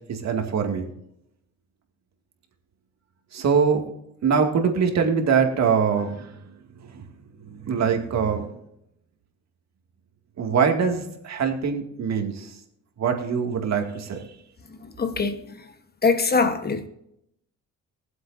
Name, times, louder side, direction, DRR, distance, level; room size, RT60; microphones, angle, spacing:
voice 1, 0.1-0.9 3.3-3.9 4.2-6.3 6.8-7.1 7.4-8.6 10.4-12.6 13.0-14.2, right 6 dB, 60° right, 2.3 m, -23 dB
voice 2, 15.0-15.4 16.0-16.9, left 4 dB, 30° left, 1.3 m, -22 dB
23.5 x 7.8 x 2.7 m
cardioid pair, 90°, 30 cm